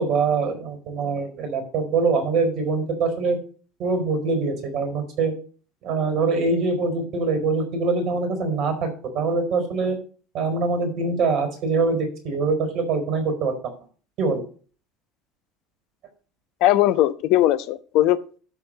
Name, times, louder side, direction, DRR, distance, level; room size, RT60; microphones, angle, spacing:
voice 1, 0.0-3.4 3.8-5.3 5.8-8.9 9.1-10.0 10.3-13.5 14.2-14.4, right 4 dB, 55° right, 7 dB, 4.4 m, -23 dB
voice 2, 16.6-18.4, left 14 dB, 65° left, 15 dB, 0.8 m, -19 dB
12.5 x 4.5 x 7.5 m, 0.40 s
hypercardioid pair, 70°, 0 cm